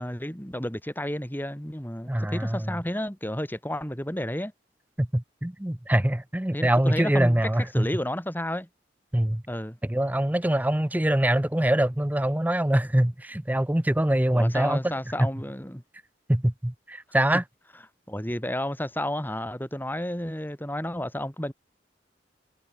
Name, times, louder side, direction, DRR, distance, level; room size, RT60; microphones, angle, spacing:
voice 1, 0.0-4.5 6.5-8.7 9.5-9.8 14.3-15.8 18.1-21.5, left 1 dB, 10° left, 7.4 m, -31 dB
voice 2, 2.1-2.8 5.0-7.9 9.1-9.4 9.9-14.9 15.2-15.3 16.3-17.4, right 1 dB, 10° right, 0.6 m, -24 dB
head